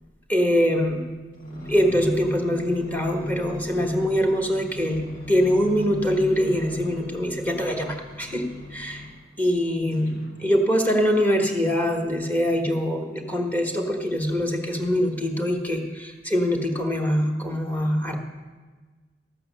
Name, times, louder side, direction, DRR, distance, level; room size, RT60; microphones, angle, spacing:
voice 1, 0.3-1.0 1.7-5.0 5.3-8.4 8.7-9.0 9.4-10.1 10.4-18.2, equal, 10° left, 3 dB, 1.5 m, -23 dB
sound 1, 1.3-9.3 9.9-11.2 11.8-11.9, left 1 dB, 50° left, 2.3 m, -37 dB
13.0 x 8.4 x 6.7 m, 1.4 s
head